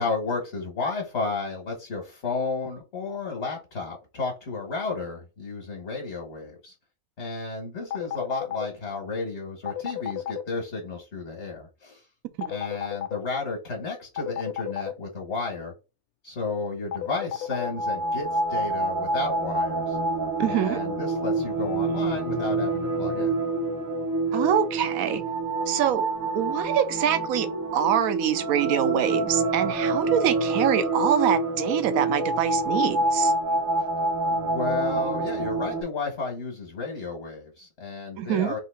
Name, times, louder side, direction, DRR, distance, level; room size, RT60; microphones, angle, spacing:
voice 1, 0.0-6.7 7.2-12.0 12.5-15.7 16.2-20.0 20.5-23.3 34.3-38.6, left 3 dB, 50° left, 1.6 m, -32 dB
sound 1, 7.9-8.7 9.7-10.4 12.4-13.2 14.2-14.9 16.9-17.7, left 11 dB, 75° left, 1.1 m, -31 dB
sound 2, 17.4-35.8, right 2 dB, 20° right, 0.6 m, -27 dB
voice 2, 20.4-20.8 24.3-25.2 25.7-26.1 26.3-33.3 38.2-38.5, right 10 dB, 75° right, 1.1 m, -25 dB
3.8 x 2.9 x 4.2 m
omnidirectional pair, 1.6 m